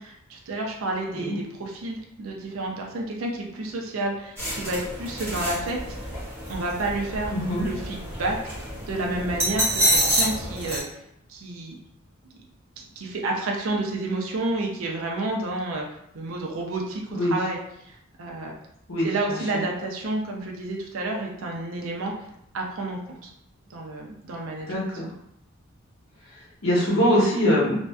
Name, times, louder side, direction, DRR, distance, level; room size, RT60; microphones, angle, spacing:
voice 1, 0.0-6.0 6.5-7.3 7.6-8.4 8.9-11.0 11.3-11.8 12.8-18.5 19.0-22.3 22.5-23.3 23.7-24.7, right 2 dB, 90° right, 0 dB, 0.5 m, -30 dB
sound 1, 4.4-10.8, right 1 dB, 15° right, 0.9 m, -28 dB
voice 2, 7.3-7.6 17.1-17.3 18.9-19.6 24.7-25.1 26.6-27.8, equal, 80° left, -7 dB, 1.0 m, -23 dB
2.6 x 2.1 x 2.2 m, 0.77 s
head